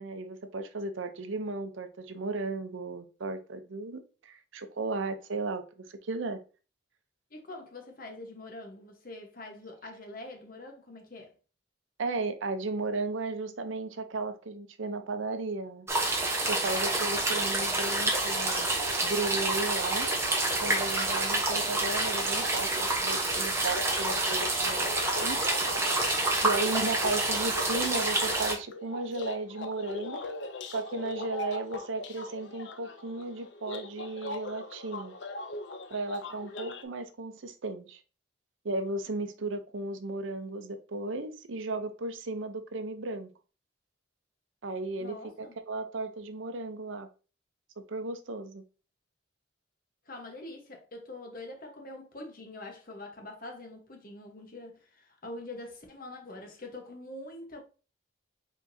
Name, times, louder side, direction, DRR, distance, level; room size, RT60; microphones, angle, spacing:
voice 1, 0.0-5.6 5.9-6.4 12.0-15.9 16.4-18.7 19.0-20.1 20.6-25.4 26.4-30.2 30.7-35.1 35.9-38.0 38.6-43.3 44.6-47.1 47.9-48.6, right 3 dB, 80° right, 0.6 m, -35 dB
voice 2, 7.3-11.3 45.0-45.6 50.1-57.6, left 2 dB, 45° left, 1.1 m, -44 dB
sound 1, 15.9-28.5, right 2 dB, 15° right, 0.9 m, -28 dB
sound 2, 23.7-36.8, left 2 dB, 65° left, 0.5 m, -40 dB
5.0 x 3.7 x 2.7 m
head